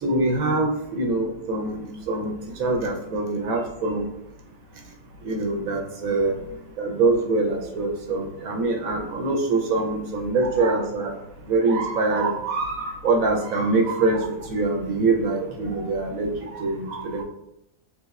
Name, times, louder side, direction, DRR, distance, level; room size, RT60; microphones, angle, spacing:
voice 1, 0.0-4.1 5.2-6.4 6.8-11.2 11.5-17.2, right 3 dB, 70° right, 1 dB, 1.0 m, -24 dB
3.4 x 3.0 x 2.3 m, 0.82 s
omnidirectional pair, 1.6 m